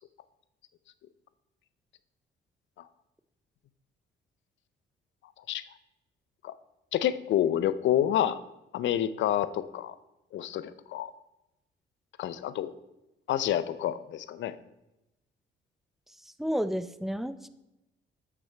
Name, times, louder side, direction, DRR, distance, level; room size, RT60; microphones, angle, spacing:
voice 1, 6.9-8.4 8.7-9.9 10.3-11.1 12.2-12.7 13.3-14.6, left 11 dB, 70° left, 15 dB, 0.5 m, -28 dB
voice 2, 16.4-17.5, equal, ahead, 13 dB, 0.4 m, -31 dB
8.1 x 6.0 x 4.4 m, 0.94 s
cardioid pair, 90°, 20 cm